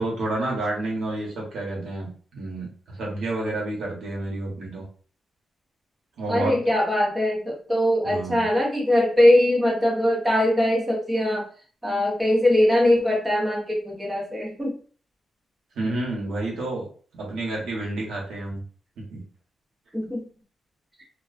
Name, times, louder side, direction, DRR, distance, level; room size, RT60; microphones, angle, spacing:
voice 1, 0.0-4.8 6.2-6.6 8.0-8.5 15.8-16.9 17.1-18.6 19.0-19.2, right 2 dB, 85° right, -2 dB, 1.0 m, -30 dB
voice 2, 6.3-11.5 11.8-14.8 19.9-20.2 21.0-21.1, left 1 dB, 15° right, -3 dB, 0.9 m, -21 dB
2.4 x 2.3 x 2.4 m, 0.42 s
cardioid pair, 100°, 0 cm